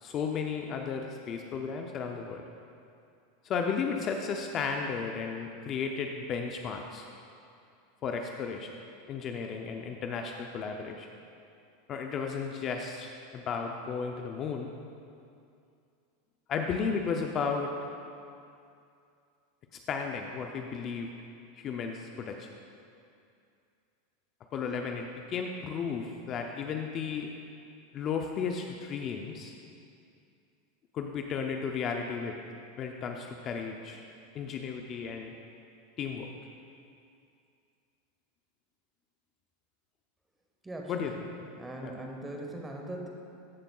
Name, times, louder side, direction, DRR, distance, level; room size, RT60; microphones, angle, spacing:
voice 1, 0.0-2.4 3.4-7.1 8.0-8.7 9.1-11.1 11.9-14.7 16.5-17.7 19.9-21.1 21.6-22.5 24.5-27.3 27.9-29.5 30.9-32.4 32.8-34.0 34.3-35.3 36.0-36.3 40.9-41.1 41.8-41.9, left 5 dB, 30° left, 3 dB, 0.4 m, -34 dB
voice 2, 40.6-41.3 41.6-43.1, right 1 dB, 10° right, 1 dB, 0.8 m, -40 dB
14.0 x 7.3 x 2.3 m, 2.5 s
supercardioid pair, 155°, 0 cm